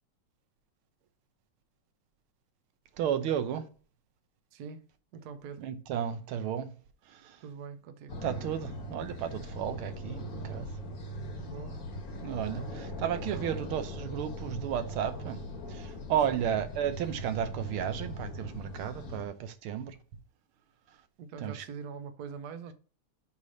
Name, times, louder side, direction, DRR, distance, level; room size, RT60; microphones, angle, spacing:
voice 1, 3.0-3.7 5.6-6.7 7.1-7.4 8.2-10.7 12.2-15.4 15.7-20.0 21.4-21.6, right 9 dB, 80° right, 1.6 m, -33 dB
voice 2, 4.5-4.8 5.1-5.7 7.4-8.2 11.4-11.7 13.1-13.5 16.3-16.5 21.2-22.7, right 6 dB, 65° right, 1.0 m, -43 dB
sound 1, 8.1-19.2, equal, 50° left, 1.5 m, -40 dB
8.3 x 3.3 x 5.1 m
omnidirectional pair, 2.4 m